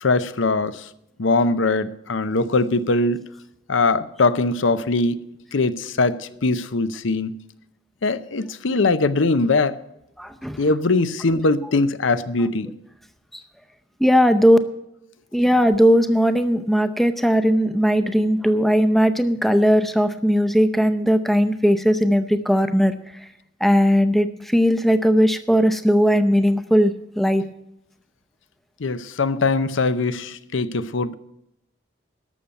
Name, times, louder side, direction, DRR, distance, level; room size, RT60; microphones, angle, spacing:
voice 1, 0.0-0.9 1.2-3.2 3.7-5.3 5.5-7.4 8.0-9.8 10.6-12.7 28.8-31.1, left 3 dB, 75° left, 0.7 m, -21 dB
voice 2, 10.2-10.6 13.3-13.4 14.0-14.6 15.3-22.9 23.6-27.4, equal, ahead, 0.6 m, -18 dB
12.5 x 7.0 x 8.9 m
head